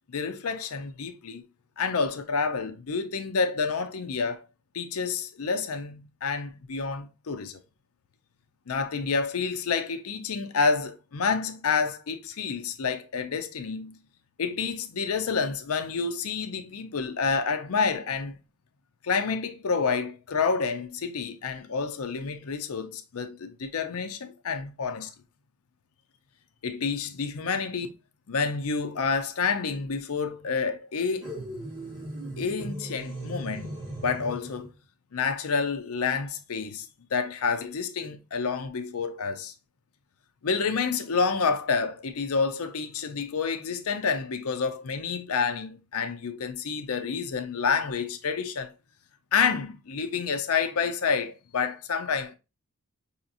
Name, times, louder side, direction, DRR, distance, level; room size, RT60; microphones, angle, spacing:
voice 1, 0.1-1.4 1.8-4.4 4.7-7.6 8.7-14.0 14.4-18.4 19.0-25.1 26.6-27.9 28.3-31.3 32.4-34.7 35.1-39.5 40.4-48.7 49.3-52.3, left 5 dB, 75° left, 0.6 m, -29 dB
sound 1, 31.2-34.7, right 1 dB, 20° right, 1.8 m, -37 dB
5.6 x 2.8 x 2.4 m
head